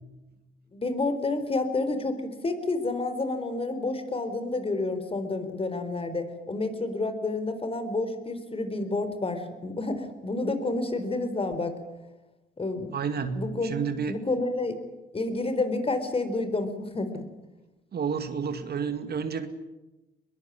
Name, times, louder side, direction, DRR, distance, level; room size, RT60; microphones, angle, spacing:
voice 1, 0.7-11.8 12.6-12.9 13.3-13.8 14.1-14.7 15.1-17.3, left 2 dB, 30° left, 9 dB, 4.3 m, -29 dB
voice 2, 12.9-14.1 17.9-19.5, right 6 dB, 55° right, 9 dB, 2.3 m, -30 dB
22.0 x 22.0 x 9.7 m, 1.0 s
cardioid pair, 90°, 20 cm